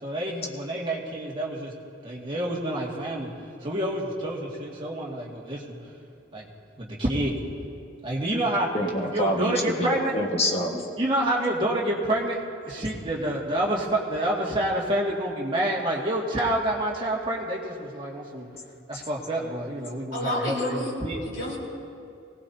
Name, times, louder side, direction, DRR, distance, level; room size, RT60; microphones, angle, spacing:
voice 1, 0.0-1.7 2.0-3.3 3.6-5.8 6.3-6.5 6.8-7.4 8.0-8.7 9.1-10.1 11.0-12.4 12.7-18.5 18.9-21.2, right 1 dB, 25° right, -4 dB, 2.1 m, -28 dB
voice 2, 8.7-10.8, equal, 30° left, 0 dB, 1.6 m, -26 dB
voice 3, 20.1-21.6, left 1 dB, 85° left, -4 dB, 4.2 m, -30 dB
23.0 x 18.0 x 2.8 m, 2.4 s
head